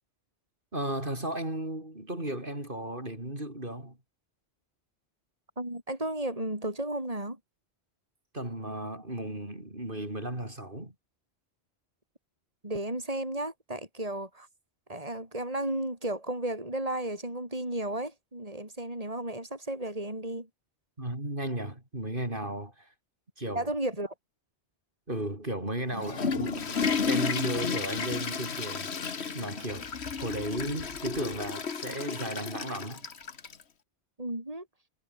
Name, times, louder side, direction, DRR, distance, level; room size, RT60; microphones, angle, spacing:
voice 1, 0.7-4.0 8.3-10.9 21.0-22.9 23.4-23.7 25.1-29.9 30.2-33.1, right 1 dB, 50° right, 6.2 m, -35 dB
voice 2, 5.6-7.4 12.6-14.5 14.9-20.5 23.5-24.1 34.2-34.7, right 1 dB, 35° right, 5.6 m, -33 dB
Water / Toilet flush, 25.8-33.6, left 5 dB, 70° left, 1.7 m, -32 dB
omnidirectional pair, 1.1 m